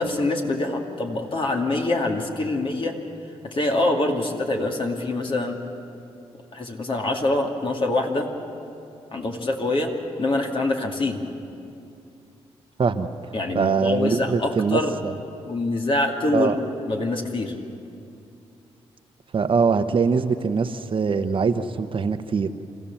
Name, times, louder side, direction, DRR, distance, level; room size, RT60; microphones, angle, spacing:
voice 1, 0.0-2.9 3.4-5.6 6.5-8.3 9.1-9.9 10.2-11.2 13.3-15.0 15.5-16.6 16.9-17.5, left 2 dB, 50° left, 1 dB, 2.4 m, -25 dB
voice 2, 13.5-15.1 16.3-16.6 19.3-22.5, right 5 dB, 50° right, 8 dB, 1.0 m, -22 dB
27.0 x 15.0 x 7.2 m, 2.6 s
cardioid pair, 65°, 12 cm